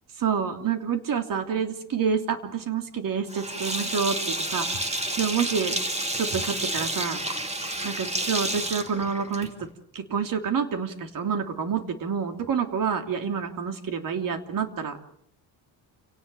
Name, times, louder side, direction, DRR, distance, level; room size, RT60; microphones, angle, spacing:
voice 1, 0.2-5.8 6.2-7.2 7.8-9.5 9.9-15.0, right 6 dB, 55° right, 6 dB, 3.1 m, -28 dB
Sink (filling or washing), 3.3-9.7, right 1 dB, 15° right, 2.4 m, -30 dB
29.0 x 18.5 x 6.9 m, 0.66 s
cardioid pair, 135°, 40 cm